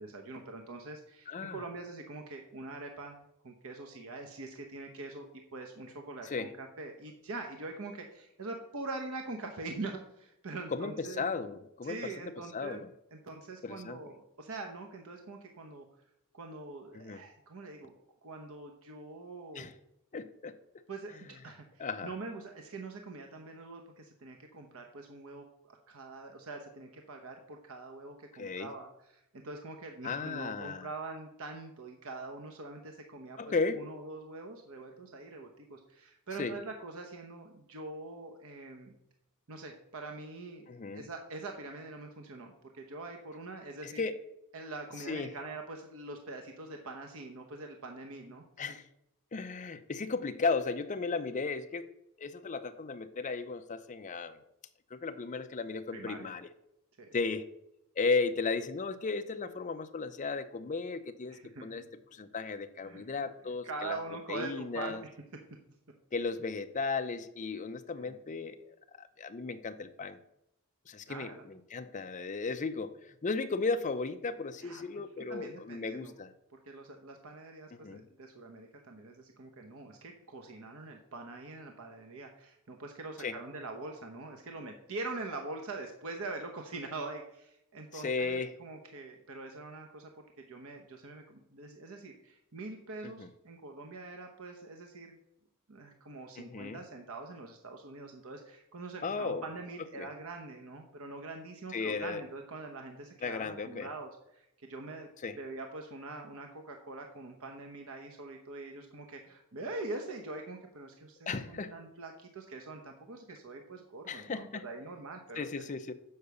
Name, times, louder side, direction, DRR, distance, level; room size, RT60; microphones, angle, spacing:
voice 1, 0.0-5.3 5.5-11.3 11.8-12.8 13.1-15.9 16.3-17.9 18.2-19.7 20.9-38.9 39.5-44.0 44.5-48.8 55.9-56.3 57.0-57.1 61.3-61.9 62.8-63.0 63.6-65.1 68.0-68.2 71.1-71.4 74.6-74.8 75.3-76.1 76.6-90.1 90.5-95.2 95.7-115.4, right 3 dB, 65° right, 3 dB, 0.9 m, -44 dB
voice 2, 1.3-1.6 6.2-6.5 10.7-12.1 12.5-12.9 13.6-14.0 16.9-17.2 19.5-19.7 20.1-20.5 21.8-22.1 28.4-28.7 30.0-30.9 33.4-33.8 36.4-36.5 40.7-41.0 43.8-44.2 45.1-45.3 48.6-48.8 49.3-51.9 52.2-54.4 54.9-56.5 57.1-57.5 58.0-61.8 62.1-64.0 64.3-65.0 66.1-68.6 69.0-70.2 70.9-73.0 73.2-76.3 77.7-78.0 83.2-83.4 87.9-88.5 93.0-93.3 96.4-96.8 99.0-99.4 100.0-100.1 101.7-102.2 103.2-103.9 105.2-105.4 111.3-111.7 114.1-114.6 115.3-115.9, left 4 dB, 35° left, 8 dB, 0.5 m, -35 dB
6.6 x 4.8 x 6.8 m, 0.81 s
head